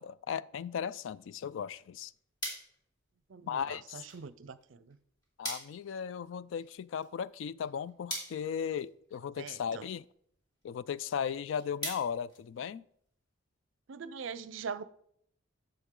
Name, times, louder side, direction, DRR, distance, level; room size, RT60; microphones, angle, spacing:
voice 1, 0.0-2.1 3.5-4.0 5.4-10.0 10.6-12.8, left 7 dB, 65° left, 0.3 m, -36 dB
sound 1, 1.7-13.1, equal, 20° left, 3.3 m, -46 dB
voice 2, 3.3-5.0 9.4-9.9 13.9-14.8, right 5 dB, 70° right, 0.5 m, -42 dB
11.0 x 7.0 x 3.7 m
head